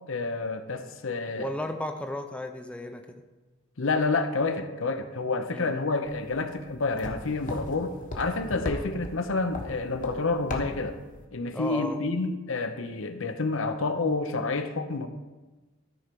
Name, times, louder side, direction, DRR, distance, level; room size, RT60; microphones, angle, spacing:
voice 1, 0.1-1.5 3.8-11.0 11.3-15.1, left 3 dB, 65° left, 8 dB, 0.7 m, -29 dB
voice 2, 1.3-3.2 5.5-5.7 11.5-12.0, left 1 dB, 5° left, 5 dB, 0.5 m, -34 dB
sound 1, 6.1-11.3, left 1 dB, 40° left, 1.1 m, -39 dB
13.0 x 4.4 x 5.3 m, 1.2 s
head